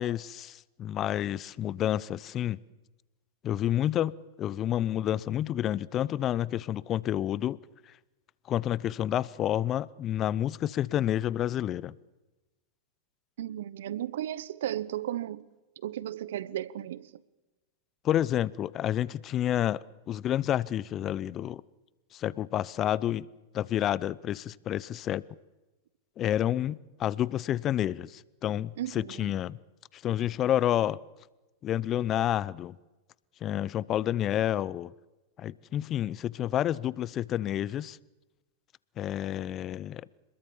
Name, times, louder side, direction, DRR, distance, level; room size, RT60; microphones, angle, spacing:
voice 1, 0.0-2.6 3.4-4.1 4.4-7.6 8.5-11.9 18.0-21.6 22.1-23.3 23.5-25.2 26.2-29.6 29.9-31.0 31.6-32.8 33.4-34.9 35.4-38.0 39.0-40.0, left 11 dB, 35° left, 0.7 m, -29 dB
voice 2, 13.4-15.5 15.8-17.1 28.8-29.3, right 12 dB, 70° right, 1.0 m, -35 dB
27.5 x 21.0 x 7.2 m
hypercardioid pair, 100°, 0 cm